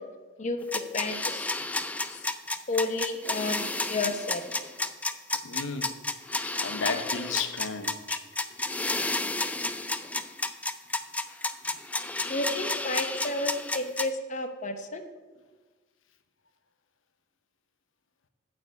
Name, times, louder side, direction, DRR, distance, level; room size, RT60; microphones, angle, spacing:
voice 1, 0.4-1.6 2.1-2.3 2.7-4.5 7.3-7.4 12.3-15.0, left 2 dB, 35° left, 7 dB, 0.8 m, -32 dB
sound 1, 0.7-14.1, left 2 dB, 5° left, 0.3 m, -31 dB
voice 2, 5.4-5.9 6.6-8.2, left 4 dB, 75° left, 8 dB, 0.8 m, -33 dB
9.4 x 5.2 x 7.9 m, 1.4 s
head